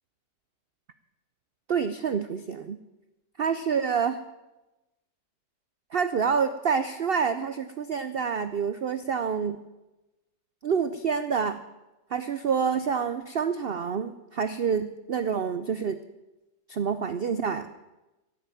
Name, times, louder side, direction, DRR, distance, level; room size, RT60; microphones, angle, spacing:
voice 1, 1.7-2.8 3.4-4.2 5.9-9.6 10.6-11.6 12.1-16.0 16.7-17.7, right 6 dB, 90° right, 11 dB, 0.5 m, -27 dB
16.0 x 7.8 x 9.1 m, 1.0 s
omnidirectional pair, 1.8 m